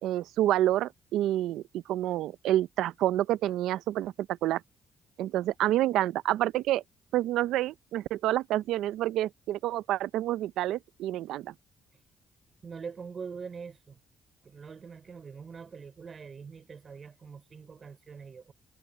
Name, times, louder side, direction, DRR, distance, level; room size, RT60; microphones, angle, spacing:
voice 1, 0.0-4.1 4.4-4.6 5.2-6.8 7.1-11.5, right 14 dB, 90° right, 0.5 m, -28 dB
voice 2, 12.6-14.0 14.4-18.5, right 5 dB, 40° right, 4.5 m, -43 dB
cardioid pair, 90°, 0 cm